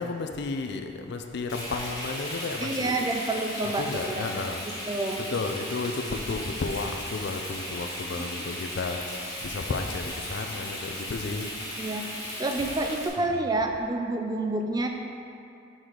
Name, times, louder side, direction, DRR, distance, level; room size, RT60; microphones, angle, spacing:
voice 1, 0.0-3.0 3.8-4.6 5.3-9.0 9.4-11.5, left 3 dB, 55° left, 5 dB, 0.4 m, -32 dB
Frying (food), 1.5-13.1, left 1 dB, 20° left, 1.2 m, -36 dB
voice 2, 2.6-4.3 4.9-5.2 8.2-8.4 11.8-12.1 12.4-14.9, right 2 dB, 20° right, 3 dB, 0.3 m, -28 dB
6.2 x 5.0 x 3.8 m, 2.6 s
head